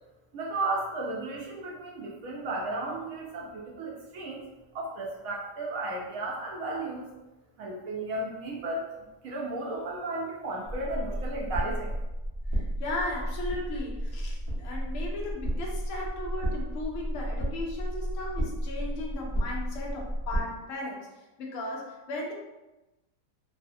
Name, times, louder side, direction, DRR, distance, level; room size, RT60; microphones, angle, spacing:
voice 1, 0.3-4.4 4.7-7.0 7.6-8.9 9.2-11.9, right 2 dB, 70° right, -2 dB, 0.9 m, -34 dB
sound 1, 10.7-20.4, equal, 25° left, 0.7 m, -32 dB
voice 2, 12.5-21.1 21.4-22.3, left 2 dB, 70° left, -1 dB, 0.7 m, -36 dB
3.3 x 2.0 x 2.6 m, 1.0 s
omnidirectional pair, 1.9 m